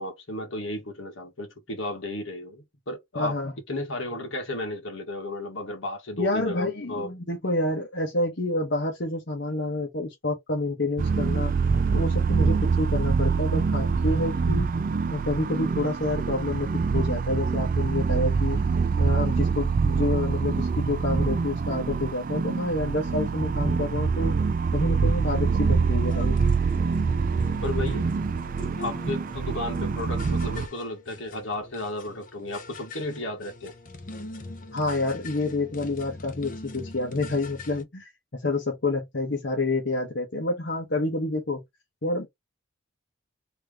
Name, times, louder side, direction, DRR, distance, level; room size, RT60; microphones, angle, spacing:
voice 1, 0.0-3.4 3.7-7.1 27.6-28.1 28.8-33.7, left 2 dB, 75° left, 1.5 m, -33 dB
voice 2, 3.1-3.5 6.2-11.5 11.9-14.7 15.1-18.6 19.0-24.3 24.7-26.4 34.7-41.6 42.0-42.3, left 2 dB, 60° left, 1.1 m, -28 dB
sound 1, 11.0-30.7, right 5 dB, 45° right, 0.4 m, -25 dB
sound 2, 26.0-37.8, left 2 dB, 40° left, 0.7 m, -43 dB
3.4 x 3.0 x 3.4 m
head